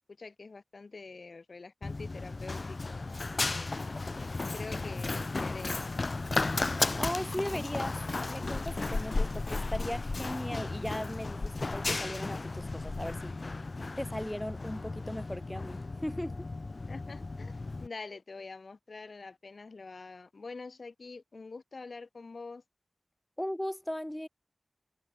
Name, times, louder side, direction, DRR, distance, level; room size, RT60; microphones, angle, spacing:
voice 1, 0.2-3.7 4.5-6.1 16.9-22.6, left 4 dB, 80° left, 5.7 m, -46 dB
Run, 1.8-17.9, left 3 dB, 55° left, 4.0 m, -34 dB
voice 2, 7.0-8.0 8.3-13.3 14.0-16.5 23.4-24.3, left 1 dB, 10° left, 4.2 m, -37 dB
wide cardioid pair, 70°, 0 cm